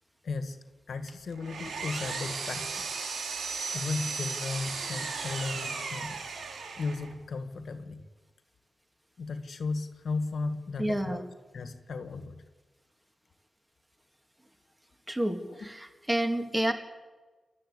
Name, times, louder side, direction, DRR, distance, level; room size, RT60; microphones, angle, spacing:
voice 1, 0.2-0.6 0.9-2.9 3.7-6.2 6.7-8.0 9.2-11.3 11.5-12.4 15.5-15.7, left 3 dB, 60° left, 9 dB, 1.7 m, -35 dB
Power tool, 1.1-7.2, right 5 dB, 85° right, 2.9 m, -36 dB
voice 2, 10.8-11.2 15.1-16.7, right 1 dB, 10° right, 6 dB, 2.0 m, -29 dB
28.5 x 12.0 x 8.3 m, 1.3 s
wide cardioid pair, 155°, 0 cm